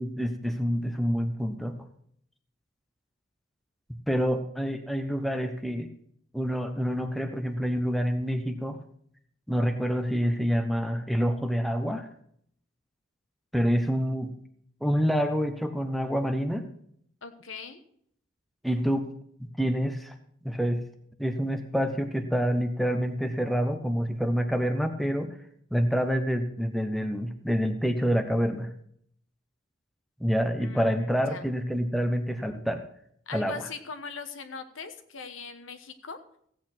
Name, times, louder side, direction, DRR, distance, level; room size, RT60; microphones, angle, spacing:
voice 1, 0.0-1.8 4.1-5.9 6.3-8.8 9.5-12.1 13.5-14.3 14.8-16.7 18.6-19.1 19.4-20.1 20.4-20.8 21.2-25.4 25.7-28.8 30.2-32.8 33.3-33.5, equal, ahead, 6 dB, 0.9 m, -27 dB
voice 2, 17.2-17.8 30.6-31.4 33.3-36.2, left 5 dB, 80° left, 9 dB, 1.2 m, -40 dB
15.5 x 8.4 x 4.4 m, 0.66 s
head